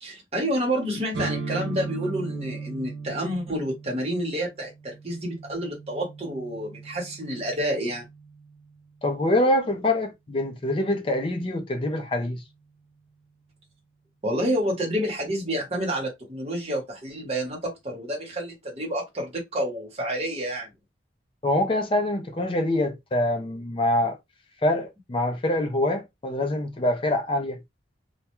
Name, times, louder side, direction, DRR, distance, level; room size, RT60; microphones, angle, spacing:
voice 1, 0.0-8.1 14.2-20.7, equal, 35° right, 0.9 m, -29 dB
sound 1, 1.1-8.9, right 4 dB, 80° right, 0.5 m, -37 dB
voice 2, 9.0-12.4 21.4-24.2 24.6-27.6, left 1 dB, 30° left, 0.4 m, -25 dB
2.2 x 2.2 x 2.9 m
head